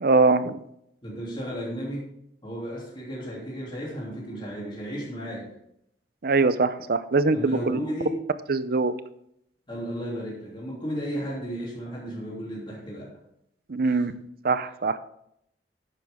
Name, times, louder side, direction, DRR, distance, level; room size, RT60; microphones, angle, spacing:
voice 1, 0.0-0.6 6.2-7.8 8.5-8.9 13.7-14.1 14.4-15.0, right 3 dB, 55° right, 13 dB, 0.6 m, -22 dB
voice 2, 1.0-2.1 2.4-5.5 7.3-8.2 9.7-13.1 13.8-14.1 14.6-14.7, equal, 30° left, -5 dB, 3.0 m, -34 dB
11.0 x 9.3 x 3.7 m, 0.75 s
head